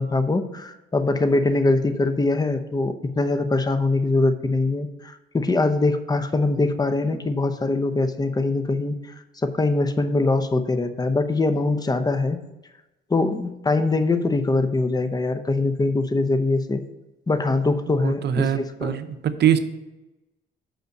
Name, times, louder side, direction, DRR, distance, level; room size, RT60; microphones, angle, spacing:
voice 1, 0.0-9.0 9.4-12.4 13.1-16.8 17.3-18.9, left 2 dB, 20° left, 9 dB, 0.8 m, -22 dB
voice 2, 18.0-19.6, right 9 dB, 60° right, 10 dB, 0.7 m, -22 dB
5.8 x 5.5 x 6.5 m, 0.99 s
cardioid pair, 90°, 20 cm